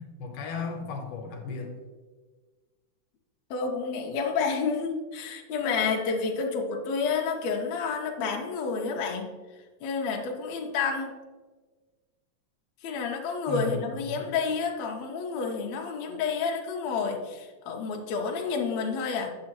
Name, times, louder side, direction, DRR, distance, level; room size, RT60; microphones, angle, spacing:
voice 1, 0.0-1.7 13.5-14.2, left 4 dB, 85° left, 3 dB, 2.6 m, -35 dB
voice 2, 3.5-9.3 9.8-11.2 12.8-19.3, left 5 dB, 70° left, 1 dB, 1.9 m, -29 dB
8.3 x 7.5 x 3.0 m, 1.4 s
omnidirectional pair, 3.7 m